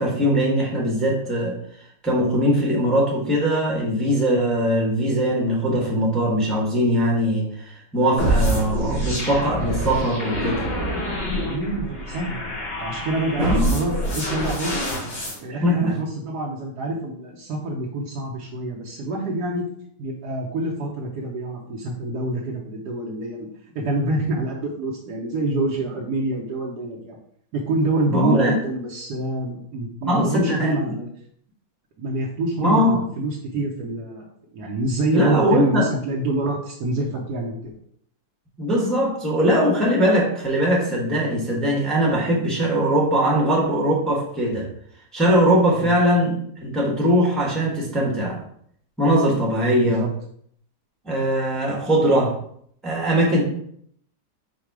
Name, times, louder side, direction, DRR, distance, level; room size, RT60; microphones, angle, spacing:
voice 1, 0.0-1.6 2.0-10.6 13.4-13.7 15.6-16.0 28.1-28.5 30.1-30.9 32.6-33.0 35.1-35.8 38.6-44.7 45.1-48.4 49.0-50.0 51.0-52.3 52.8-53.4, equal, ahead, -3 dB, 0.7 m, -21 dB
sound 1, 8.2-15.4, equal, 75° left, 2.3 m, -26 dB
voice 2, 11.4-12.4 12.8-14.8 15.4-19.7 20.0-23.5 23.7-27.2 27.5-31.1 32.0-34.2 34.5-37.7 45.8-45.9 49.8-50.1, right 2 dB, 70° right, -2 dB, 1.2 m, -26 dB
4.8 x 2.2 x 4.6 m, 0.65 s
omnidirectional pair, 1.9 m